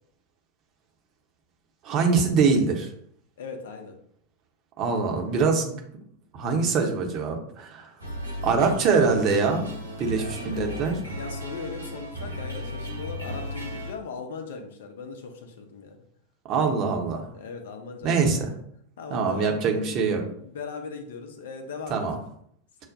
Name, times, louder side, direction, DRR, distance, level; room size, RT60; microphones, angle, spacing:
voice 1, 1.8-2.9 4.8-5.7 6.3-7.9 8.4-9.7 10.0-11.0 16.4-17.3 18.0-18.5 19.1-20.2 21.9-22.2, right 5 dB, 35° right, 2 dB, 0.8 m, -23 dB
voice 2, 3.4-4.0 10.2-10.8 11.2-16.0 17.3-18.6 19.0-22.0, left 4 dB, 60° left, 5 dB, 0.6 m, -39 dB
sound 1, 8.0-13.9, left 1 dB, 90° left, 0.8 m, -35 dB
6.2 x 2.1 x 2.6 m, 0.66 s
figure-of-eight pair, 90°, 0 cm